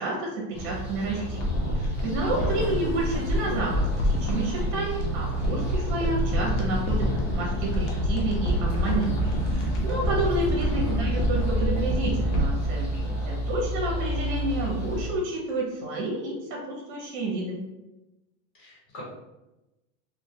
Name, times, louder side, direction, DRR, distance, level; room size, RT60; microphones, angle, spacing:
voice 1, 0.0-7.1 7.3-9.1 9.5-17.6, right 2 dB, 35° right, -2 dB, 0.6 m, -30 dB
sound 1, 0.5-15.1, right 1 dB, 15° left, 0.6 m, -31 dB
sound 2, 1.4-13.9 14.2-14.3, left 1 dB, 65° left, 0.7 m, -28 dB
voice 2, 2.4-2.7 10.6-11.1 18.6-19.0, equal, 80° left, -5 dB, 1.1 m, -41 dB
2.2 x 2.1 x 2.7 m, 0.99 s
supercardioid pair, 160°, 40 cm